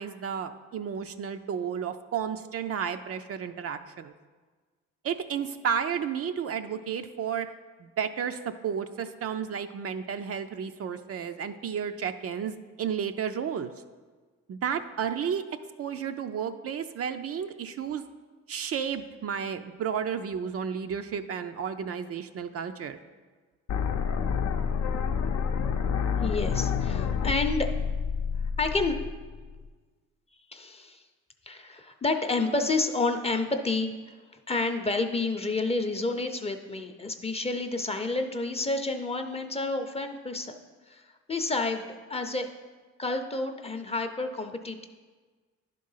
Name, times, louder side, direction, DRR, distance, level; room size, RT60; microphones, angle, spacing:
voice 1, 0.0-4.1 5.0-7.5 7.8-13.7 14.5-15.5 15.8-18.0 18.5-23.0, right 7 dB, 50° right, 8 dB, 0.5 m, -32 dB
sound 1, 23.7-29.7, left 6 dB, 65° left, 0.7 m, -28 dB
voice 2, 26.2-27.7 28.6-29.0 30.5-31.0 31.5-34.2 34.5-40.5 40.9-42.5 43.0-44.9, left 3 dB, 20° left, 6 dB, 0.7 m, -29 dB
10.5 x 3.8 x 5.6 m, 1.4 s
cardioid pair, 90°, 30 cm